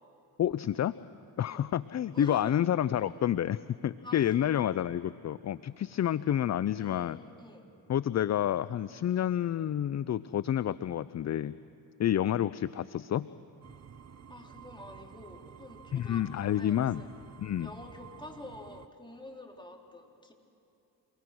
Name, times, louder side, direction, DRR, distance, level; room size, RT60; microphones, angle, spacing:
voice 1, 0.4-0.9 1.4-7.2 7.9-11.5 12.0-13.3 15.9-17.0 17.4-17.7, left 10 dB, 35° left, 18 dB, 0.5 m, -29 dB
voice 2, 2.1-2.6 4.0-4.7 6.5-7.7 14.3-17.1 17.6-20.3, left 1 dB, 10° left, 0 dB, 4.2 m, -47 dB
sound 1, 13.6-18.9, right 7 dB, 35° right, 0.8 m, -51 dB
28.5 x 18.5 x 6.3 m, 2.8 s
hypercardioid pair, 50°, 46 cm